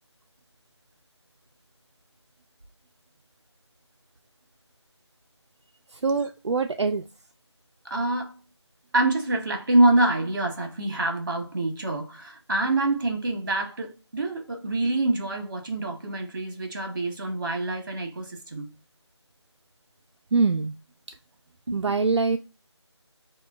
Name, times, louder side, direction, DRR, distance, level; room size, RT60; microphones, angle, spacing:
voice 1, 5.9-7.0 20.3-20.7 21.7-22.4, right 4 dB, 70° right, 0.4 m, -24 dB
voice 2, 7.8-8.3 8.9-18.7 21.7-22.0, right 2 dB, 45° right, 1.1 m, -26 dB
6.5 x 2.3 x 2.4 m
figure-of-eight pair, 170°, 15 cm